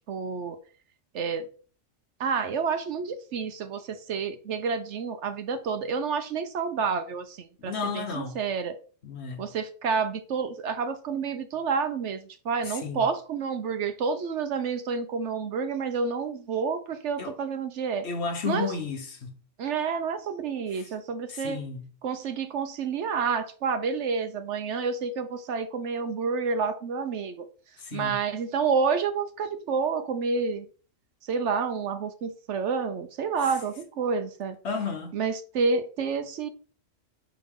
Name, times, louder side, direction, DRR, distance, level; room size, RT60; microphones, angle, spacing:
voice 1, 0.1-0.6 1.1-1.5 2.2-8.8 9.4-18.1 18.5-18.7 19.6-21.6 22.0-27.5 27.9-30.7 31.3-34.6 35.1-36.5, right 5 dB, 65° right, 1.0 m, -29 dB
voice 2, 7.6-8.4 9.0-9.4 12.6-13.0 17.2-17.4 18.0-19.3 20.7-20.9 21.3-21.9 27.8-28.2 33.4-33.5 34.6-35.2, left 5 dB, 55° left, 1.2 m, -33 dB
5.7 x 5.2 x 3.6 m
omnidirectional pair, 1.4 m